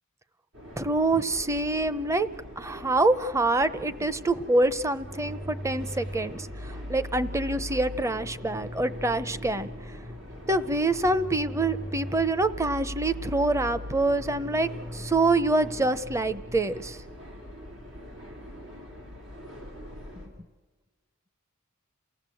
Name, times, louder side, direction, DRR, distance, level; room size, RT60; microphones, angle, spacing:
sound 1, 0.5-20.3, equal, 80° right, 4.9 m, -44 dB
voice 1, 0.8-2.3 2.6-9.7 10.5-17.0, right 2 dB, 15° right, 14 dB, 0.7 m, -26 dB
sound 2, 5.0-16.9, equal, 40° right, 1.3 m, -39 dB
28.5 x 17.0 x 7.7 m, 1.3 s
head